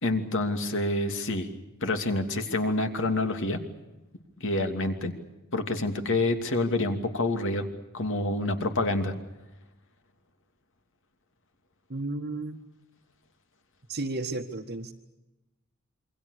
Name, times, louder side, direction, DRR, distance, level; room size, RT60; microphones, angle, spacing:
voice 1, 0.0-1.5 1.8-3.6 4.4-5.1 5.5-7.7 7.9-9.1, left 2 dB, 60° left, 6 dB, 2.8 m, -27 dB
voice 2, 11.9-12.6 13.9-14.9, right 2 dB, 50° right, -2 dB, 1.6 m, -33 dB
27.5 x 24.0 x 6.6 m, 1.0 s
head